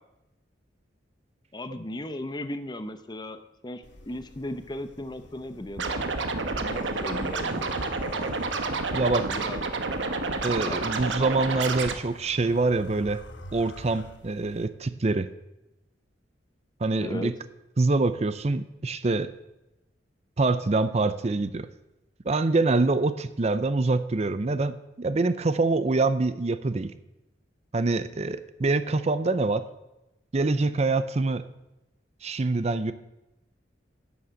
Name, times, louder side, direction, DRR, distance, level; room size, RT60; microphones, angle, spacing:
voice 1, 1.5-6.0 6.6-8.3 9.2-9.6 10.7-10.8 17.0-17.3, left 1 dB, 25° left, 10 dB, 0.7 m, -37 dB
sound 1, 3.8-14.7, left 1 dB, 75° left, 1.1 m, -47 dB
Scratching (performance technique), 5.8-11.9, right 3 dB, 90° right, 1.2 m, -29 dB
voice 2, 8.9-9.3 10.4-13.2 13.5-15.3 16.8-17.3 17.8-19.3 20.4-21.7 22.3-26.9 27.7-29.6 30.3-31.4 32.2-32.9, right 3 dB, 35° right, 12 dB, 0.5 m, -25 dB
11.0 x 7.1 x 7.6 m, 0.95 s
head